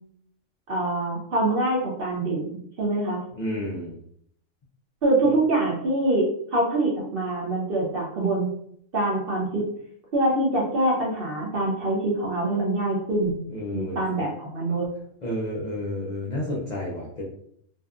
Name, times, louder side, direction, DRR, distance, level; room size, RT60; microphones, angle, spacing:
voice 1, 0.7-2.5 2.8-3.2 5.0-8.5 8.9-9.6 10.1-13.4 13.7-14.9, right 2 dB, 55° right, -3 dB, 0.6 m, -24 dB
voice 2, 3.4-4.0 13.5-14.0 15.2-17.3, left 1 dB, 70° left, -4 dB, 0.4 m, -30 dB
2.6 x 2.4 x 2.3 m, 0.67 s
omnidirectional pair, 1.4 m